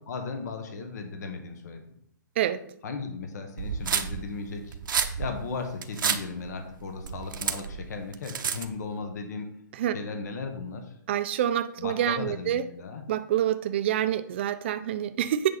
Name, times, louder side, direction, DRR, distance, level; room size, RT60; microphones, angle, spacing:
voice 1, 0.1-1.8 2.8-4.8 5.2-9.5 9.9-10.9 11.8-13.0, left 4 dB, 55° left, 6 dB, 1.2 m, -36 dB
sound 1, 3.6-8.9, right 7 dB, 75° right, 0.9 m, -30 dB
voice 2, 11.1-12.6 13.1-15.5, right 11 dB, 35° right, 12 dB, 0.5 m, -27 dB
8.8 x 5.4 x 4.0 m, 0.73 s
hypercardioid pair, 170°, 11 cm